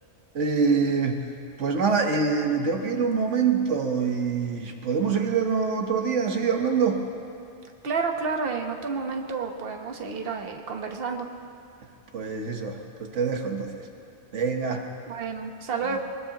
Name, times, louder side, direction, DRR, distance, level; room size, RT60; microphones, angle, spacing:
voice 1, 0.3-1.2 1.6-7.0 12.1-13.8 14.3-14.9 15.9-16.0, right 5 dB, 90° right, 4 dB, 1.5 m, -25 dB
voice 2, 7.8-11.3 15.1-16.0, right 4 dB, 55° right, 3 dB, 1.3 m, -30 dB
22.0 x 21.0 x 2.9 m, 2.7 s
omnidirectional pair, 1.2 m